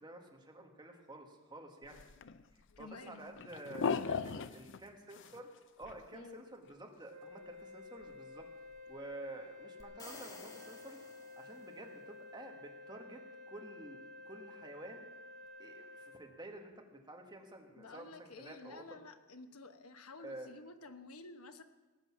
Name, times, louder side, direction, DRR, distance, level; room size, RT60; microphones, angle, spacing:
voice 1, 0.0-2.0 2.8-5.5 5.8-8.4 8.9-11.0 11.4-15.1 15.6-18.8 20.2-20.5, right 1 dB, 20° right, 2 dB, 1.7 m, -50 dB
sound 1, 1.8-2.8 3.1-4.8 5.1-6.0 6.4-6.5 6.7-6.8 8.1-8.2 8.4-8.5 8.8-8.9, left 5 dB, 60° left, 0.5 m, -38 dB
voice 2, 2.7-3.4 6.1-6.4 17.8-21.6, left 3 dB, 80° left, 8 dB, 1.1 m, -52 dB
Wind instrument woodwind instrument, 7.1-16.2, left 2 dB, 55° right, 2.4 m, -52 dB
sound 2, 9.8-11.9, left 2 dB, 15° left, 1.8 m, -53 dB
18.0 x 8.2 x 7.3 m, 1.2 s
head